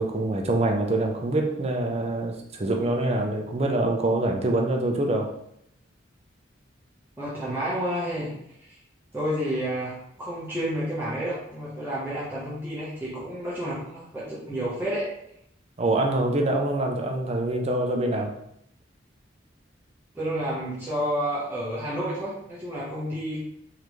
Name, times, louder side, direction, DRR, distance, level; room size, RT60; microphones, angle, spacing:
voice 1, 0.0-5.3 15.8-18.3, right 2 dB, 35° right, 2 dB, 0.6 m, -25 dB
voice 2, 7.2-8.3 8.6-8.8 9.1-15.1 20.1-23.4, equal, 10° right, -9 dB, 1.1 m, -30 dB
3.8 x 3.3 x 3.1 m, 0.76 s
head